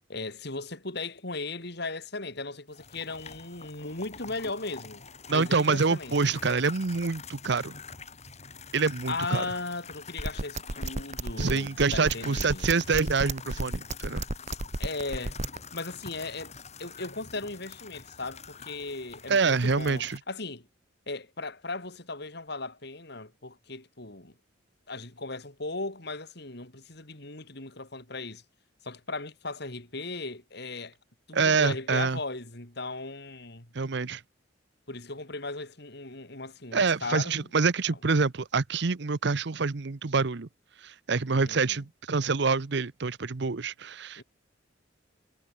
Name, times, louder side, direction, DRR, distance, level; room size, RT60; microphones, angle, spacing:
voice 1, 0.1-5.0 5.3-6.2 9.1-12.7 14.8-15.4 15.7-16.5 16.8-20.7 21.1-24.3 24.9-28.4 28.8-31.0 31.3-33.7 34.9-37.5 41.3-41.8 44.2-44.3, left 3 dB, 60° left, 5.2 m, -37 dB
sound 1, 2.7-20.2, left 5 dB, 35° left, 4.5 m, -46 dB
voice 2, 5.3-7.8 8.7-9.4 11.4-14.2 19.3-20.2 31.3-32.2 33.7-34.2 36.7-40.5 40.8-44.2, right 4 dB, 65° right, 0.8 m, -26 dB
sound 2, 10.2-15.6, right 2 dB, 40° right, 1.5 m, -31 dB
head